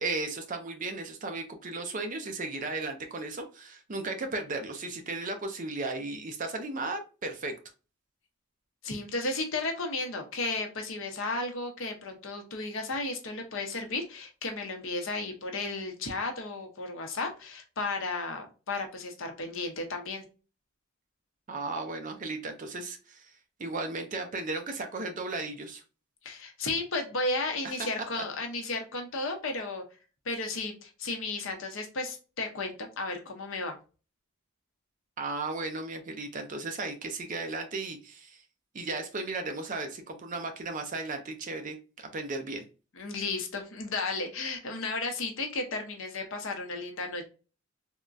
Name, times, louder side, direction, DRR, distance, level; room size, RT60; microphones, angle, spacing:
voice 1, 0.0-7.6 21.5-25.8 27.8-27.9 28.2-28.3 35.2-38.4 38.7-42.7, right 3 dB, 40° right, 5 dB, 0.5 m, -35 dB
voice 2, 8.8-20.2 26.2-29.8 30.2-33.8 42.9-47.3, left 3 dB, 65° left, 4 dB, 0.8 m, -34 dB
3.6 x 2.1 x 2.4 m, 0.34 s
head